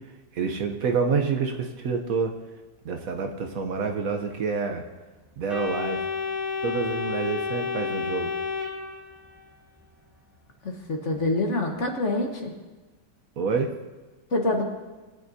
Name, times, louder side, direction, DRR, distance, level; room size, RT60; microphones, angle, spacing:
voice 1, 0.3-2.4 2.8-4.8 5.4-6.0 6.6-8.3 13.4-13.7, right 5 dB, 60° right, 5 dB, 1.1 m, -27 dB
Organ, 5.5-9.4, left 5 dB, ahead, 1.9 m, -30 dB
voice 2, 10.6-12.5 14.3-14.6, left 2 dB, 45° left, 2 dB, 1.3 m, -26 dB
20.5 x 8.9 x 2.7 m, 1.2 s
omnidirectional pair, 1.9 m